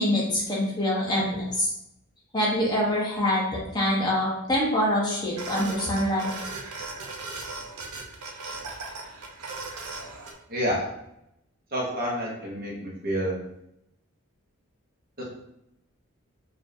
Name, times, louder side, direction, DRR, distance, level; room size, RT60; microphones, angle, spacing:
voice 1, 0.0-1.7 2.3-6.3, left 1 dB, 20° left, -4 dB, 0.8 m, -25 dB
sound 1, 5.3-10.3, right 3 dB, 85° right, 0.7 m, -37 dB
voice 2, 10.5-10.8 11.7-13.4 15.2-15.3, equal, 40° right, -3 dB, 0.9 m, -28 dB
5.0 x 2.6 x 2.6 m, 0.82 s
head